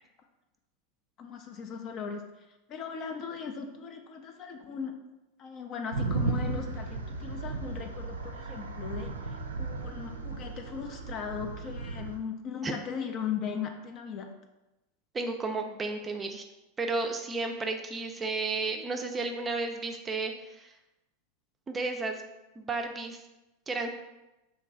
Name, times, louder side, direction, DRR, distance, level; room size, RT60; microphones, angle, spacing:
voice 1, 1.2-2.2 2.7-4.9 5.4-14.3, left 7 dB, 40° left, 5 dB, 0.5 m, -38 dB
sound 1, 5.9-12.2, right 3 dB, 85° right, 0.4 m, -35 dB
voice 2, 15.1-16.4 16.8-20.7 21.7-22.2 22.6-23.2 23.7-23.9, right 3 dB, 20° right, 4 dB, 0.4 m, -33 dB
3.0 x 2.6 x 3.8 m, 0.98 s
hypercardioid pair, 90°, 0 cm